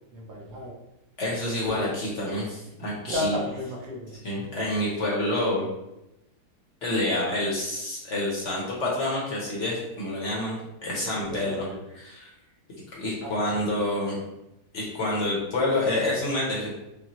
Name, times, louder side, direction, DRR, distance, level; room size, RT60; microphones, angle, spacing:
voice 1, 0.1-0.7 1.6-1.9 3.0-4.2 11.2-11.8 13.2-13.7, left 1 dB, 65° right, -2 dB, 1.3 m, -33 dB
voice 2, 1.2-3.4 4.2-5.6 6.8-10.6 10.8-11.6 12.0-12.2 12.9-14.2 14.7-16.7, left 1 dB, 50° left, -5 dB, 1.0 m, -28 dB
5.6 x 2.2 x 2.9 m, 0.92 s
omnidirectional pair, 2.1 m